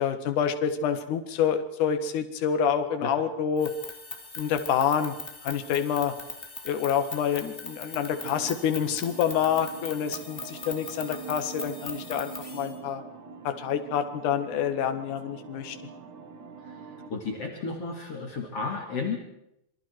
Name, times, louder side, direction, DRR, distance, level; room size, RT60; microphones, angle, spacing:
voice 1, 0.0-3.7 4.4-5.1 5.4-6.1 6.7-13.0 13.4-15.8, left 8 dB, 60° left, 7 dB, 2.9 m, -27 dB
sound 1, 3.6-12.7, left 2 dB, 20° left, 1.9 m, -41 dB
sound 2, 8.0-17.1, right 5 dB, 55° right, 3.5 m, -44 dB
voice 2, 16.6-19.2, left 4 dB, 45° left, 1 dB, 3.1 m, -33 dB
27.0 x 24.0 x 4.6 m, 0.80 s
omnidirectional pair, 4.3 m